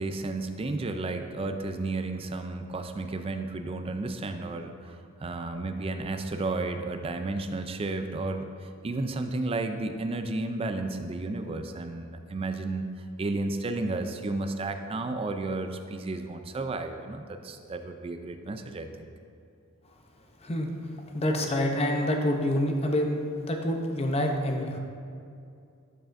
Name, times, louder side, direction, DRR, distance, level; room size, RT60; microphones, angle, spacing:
voice 1, 0.0-5.0 5.2-12.9 13.2-19.1, right 2 dB, 25° right, 7 dB, 0.4 m, -32 dB
voice 2, 20.4-24.8, left 1 dB, 30° left, 3 dB, 0.6 m, -27 dB
13.0 x 4.8 x 2.5 m, 2.4 s
head